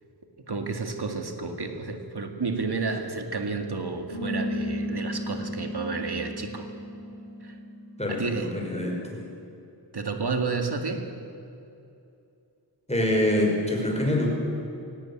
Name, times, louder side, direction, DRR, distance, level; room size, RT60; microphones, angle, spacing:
voice 1, 0.5-6.7 7.4-7.6 8.1-8.5 9.9-11.0, right 4 dB, 65° right, 5 dB, 2.0 m, -31 dB
sound 1, 4.1-9.1, equal, 70° left, 6.3 m, -34 dB
voice 2, 8.0-9.3 12.9-14.3, left 1 dB, 15° left, 0 dB, 5.6 m, -25 dB
18.0 x 17.0 x 8.8 m, 2.7 s
wide cardioid pair, 60°, 42 cm